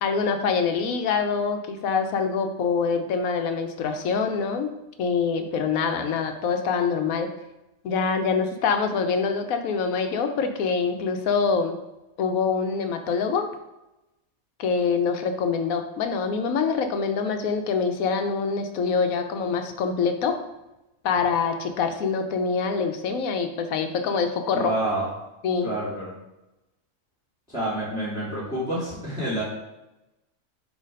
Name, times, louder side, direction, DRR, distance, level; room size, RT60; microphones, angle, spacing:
voice 1, 0.0-4.7 5.0-7.3 7.8-11.8 12.2-13.5 14.6-20.4 21.0-24.7 25.4-25.7, left 5 dB, 80° left, 6 dB, 1.1 m, -25 dB
voice 2, 24.5-25.1 25.6-26.1 27.5-29.4, right 1 dB, 5° right, -8 dB, 2.1 m, -28 dB
6.4 x 3.2 x 5.2 m, 0.96 s
omnidirectional pair, 1.5 m